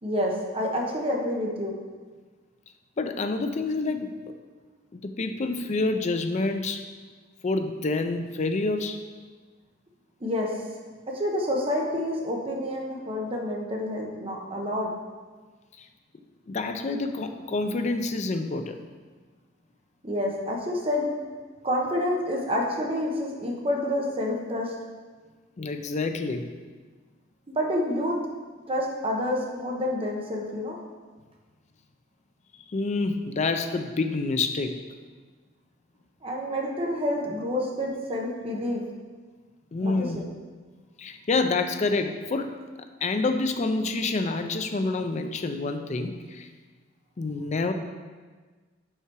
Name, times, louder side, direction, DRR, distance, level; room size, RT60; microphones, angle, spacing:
voice 1, 0.0-1.7 10.2-10.6 11.1-14.9 20.0-21.1 21.6-24.7 27.5-28.2 28.7-30.8 36.2-38.8 39.8-40.3, left 1 dB, 30° right, -1 dB, 0.9 m, -28 dB
voice 2, 3.0-4.1 4.9-6.8 7.4-9.0 15.8-15.9 16.5-18.8 25.6-26.5 32.5-34.8 37.8-37.9 39.7-40.2 41.0-42.5 43.0-46.5 47.2-47.7, left 3 dB, 35° left, 7 dB, 0.4 m, -27 dB
5.5 x 4.8 x 4.7 m, 1.4 s
head